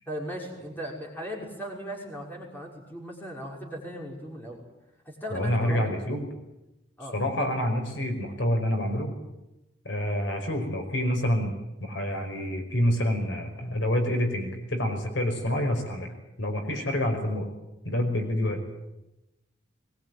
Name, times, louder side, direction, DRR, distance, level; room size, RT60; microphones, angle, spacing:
voice 1, 0.1-4.6 5.1-5.9 7.0-7.2, equal, 10° left, -1 dB, 5.7 m, -37 dB
voice 2, 5.3-6.2 7.1-9.1 9.9-11.5 11.8-16.1 16.4-17.5 17.9-18.6, left 1 dB, 65° left, 4 dB, 5.3 m, -27 dB
22.0 x 21.0 x 9.5 m, 0.95 s
head